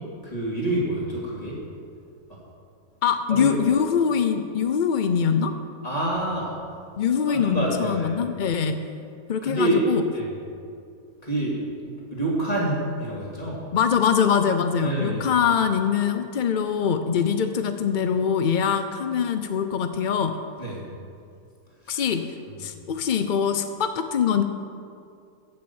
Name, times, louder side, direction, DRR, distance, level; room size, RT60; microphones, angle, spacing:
voice 1, 0.2-1.6 3.3-3.6 5.8-6.5 7.3-8.1 9.4-9.8 10.1-10.3 11.2-11.6 11.8-13.6 14.8-15.3 20.6-20.8 21.8-22.0 22.5-22.6, right 1 dB, 25° left, -5 dB, 3.0 m, -27 dB
voice 2, 3.0-5.5 7.0-8.8 9.3-10.0 13.7-20.4 21.9-22.2 22.6-24.4, left 7 dB, 75° left, 8 dB, 0.4 m, -23 dB
15.0 x 6.5 x 7.1 m, 2.4 s
omnidirectional pair, 1.7 m